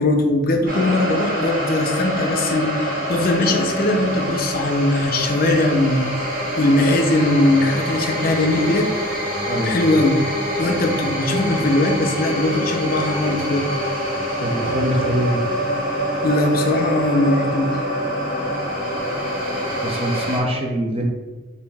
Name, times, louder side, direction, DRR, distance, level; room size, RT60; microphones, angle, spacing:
voice 1, 0.0-6.1 6.6-8.9 9.6-10.2 10.6-13.7 16.2-17.8, left 2 dB, 50° left, 4 dB, 0.5 m, -20 dB
sound 1, 0.7-20.4, equal, 45° right, 1.3 m, -25 dB
voice 2, 9.5-9.9 14.4-15.5 19.8-21.0, equal, 30° right, 0 dB, 0.6 m, -23 dB
5.1 x 2.7 x 3.4 m, 1.3 s
head